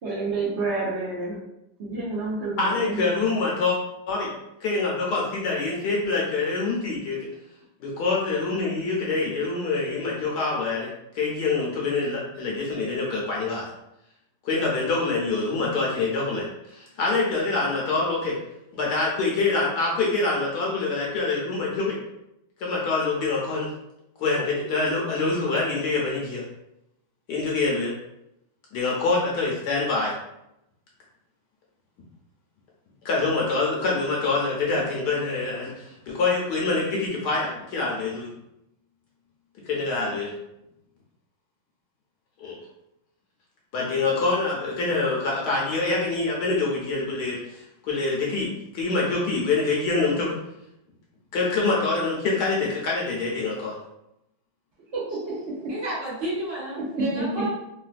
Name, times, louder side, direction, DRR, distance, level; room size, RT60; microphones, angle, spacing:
voice 1, 0.0-1.4 1.8-3.0 54.9-55.7 56.8-57.2, right 3 dB, 85° right, -7 dB, 0.6 m, -29 dB
voice 2, 2.6-3.8 4.1-4.3 4.6-7.2 7.8-10.9 11.1-13.7 14.4-18.4 18.7-22.0 22.6-23.7 24.2-26.4 27.3-27.9 28.7-30.1 33.0-38.3 39.7-40.3 42.4-42.6 43.7-48.5 48.7-50.3 51.3-53.7, left 3 dB, 70° left, -3 dB, 1.1 m, -25 dB
voice 3, 55.7-57.5, right 2 dB, 60° right, -8 dB, 1.9 m, -31 dB
3.8 x 2.2 x 2.4 m, 0.85 s
omnidirectional pair, 2.2 m